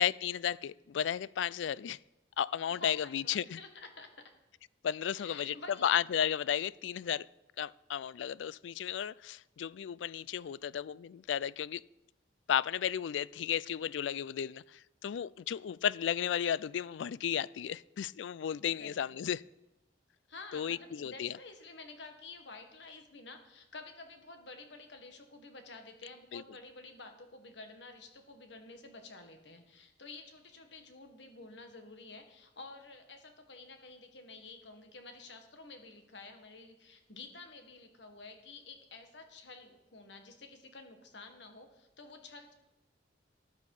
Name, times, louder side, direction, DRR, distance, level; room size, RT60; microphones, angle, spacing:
voice 1, 0.0-2.0 2.4-3.6 4.8-5.6 5.8-7.3 7.6-11.8 12.5-19.4 20.5-21.3 26.3-26.4, left 9 dB, 90° left, 22 dB, 0.4 m, -34 dB
voice 2, 2.7-4.3 5.1-6.0 18.7-19.3 20.3-42.5, left 3 dB, 70° left, 6 dB, 1.8 m, -51 dB
13.5 x 10.5 x 4.9 m, 0.93 s
head